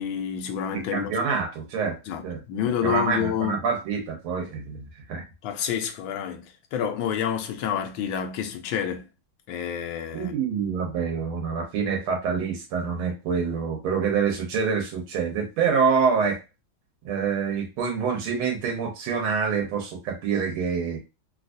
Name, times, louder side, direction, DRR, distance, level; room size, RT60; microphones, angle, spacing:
voice 1, 0.0-1.1 2.1-2.2 2.5-3.6 5.4-9.0 9.5-10.3, left 9 dB, 75° left, 1.3 m, -28 dB
voice 2, 0.7-2.4 2.8-4.8 5.1-5.2 10.1-16.4 17.0-21.0, right 6 dB, 90° right, 1.8 m, -26 dB
3.9 x 2.4 x 2.5 m
omnidirectional pair, 2.3 m